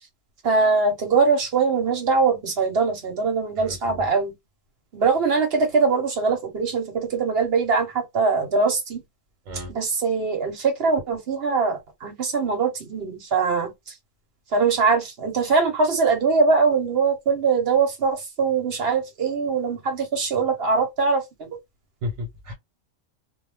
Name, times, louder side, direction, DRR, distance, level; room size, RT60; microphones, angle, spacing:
voice 1, 0.4-4.3 4.9-9.0 9.7-13.9 14.5-21.5, right 4 dB, 55° right, 1.0 m, -22 dB
voice 2, 3.6-4.0 9.5-9.7 22.0-22.5, left 2 dB, 80° right, 1.2 m, -33 dB
2.3 x 2.2 x 3.2 m
omnidirectional pair, 1.3 m